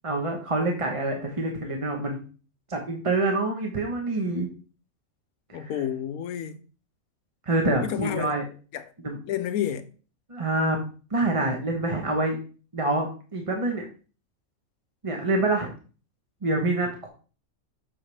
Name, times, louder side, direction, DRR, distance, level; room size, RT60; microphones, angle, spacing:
voice 1, 0.0-2.2 2.7-4.5 5.5-5.7 7.5-8.4 9.0-9.2 10.3-10.8 11.1-12.4 12.7-13.9 15.0-15.7 16.4-17.1, right 2 dB, 25° right, 1.0 m, -26 dB
voice 2, 5.5-6.6 7.8-8.3 8.7-8.9 9.3-9.9, left 10 dB, 85° left, 1.2 m, -30 dB
7.7 x 5.8 x 3.3 m
omnidirectional pair, 1.5 m